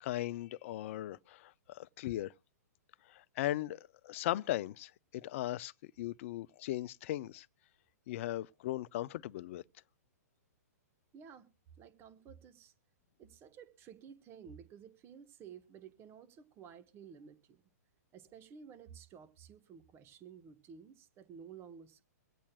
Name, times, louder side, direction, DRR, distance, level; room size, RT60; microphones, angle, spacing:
voice 1, 0.0-2.3 3.1-5.7 6.0-7.5 8.1-9.6, left 14 dB, 50° left, 0.5 m, -38 dB
voice 2, 11.1-11.5 11.8-12.7 13.2-17.6 18.1-22.0, right 7 dB, 25° right, 1.3 m, -53 dB
24.5 x 8.5 x 2.3 m
hypercardioid pair, 125°, 9 cm